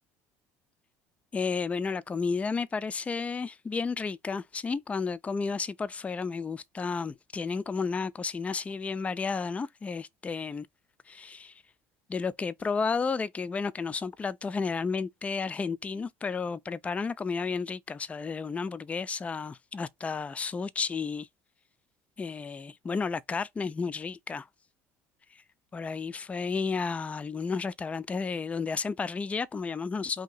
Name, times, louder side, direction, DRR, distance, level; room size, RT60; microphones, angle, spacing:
voice 1, 1.3-10.7 11.1-11.5 12.1-21.3 22.2-24.5 25.3-25.4 25.7-30.2, left 5 dB, 20° left, 0.3 m, -32 dB
2.8 x 2.7 x 3.9 m
supercardioid pair, 90°, 6 cm